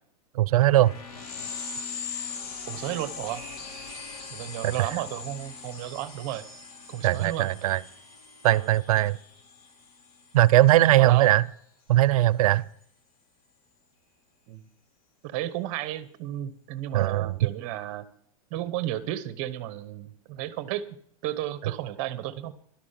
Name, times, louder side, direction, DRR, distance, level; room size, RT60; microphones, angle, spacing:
voice 1, 0.3-0.9 4.6-4.9 7.0-7.8 8.4-9.2 10.3-11.4 11.9-12.6 16.9-17.4, right 15 dB, 75° right, 20 dB, 0.6 m, -20 dB
sound 1, 0.7-10.8, left 5 dB, 90° left, 3.0 m, -40 dB
voice 2, 2.7-3.4 4.3-6.5 6.9-7.5 8.5-8.7 11.0-11.3 14.5-14.7 15.2-18.0 18.5-20.8 21.2-22.5, right 13 dB, 35° right, 14 dB, 1.0 m, -33 dB
12.0 x 12.0 x 5.8 m, 0.63 s
supercardioid pair, 170°, 19 cm